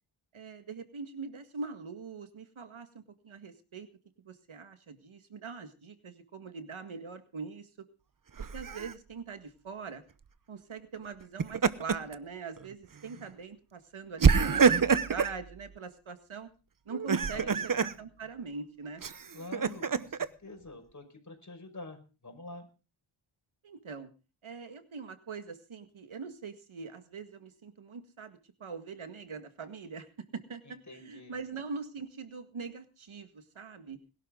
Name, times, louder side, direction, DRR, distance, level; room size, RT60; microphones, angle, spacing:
voice 1, 0.3-3.9 4.2-7.7 8.5-10.0 10.5-14.6 15.0-16.5 16.9-19.0 23.6-24.1 24.4-30.1 30.3-34.0, right 5 dB, 70° right, 9 dB, 1.9 m, -42 dB
Laughter, 8.4-8.9 11.2-12.1 12.6-12.7 14.2-15.4 16.9-17.9 19.0-20.3, right 6 dB, 40° right, 0.9 m, -26 dB
voice 2, 19.3-22.7 30.6-31.4, left 2 dB, 35° left, 4 dB, 5.6 m, -47 dB
21.0 x 12.0 x 3.8 m, 0.34 s
wide cardioid pair, 70°, 50 cm